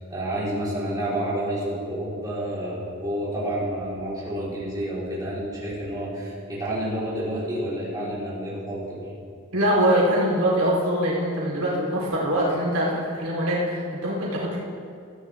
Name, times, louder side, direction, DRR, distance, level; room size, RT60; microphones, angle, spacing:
voice 1, 0.0-9.1, right 1 dB, 20° right, -8 dB, 4.2 m, -29 dB
voice 2, 9.5-14.6, equal, 85° right, -5 dB, 3.7 m, -23 dB
18.5 x 14.0 x 3.6 m, 2.3 s
head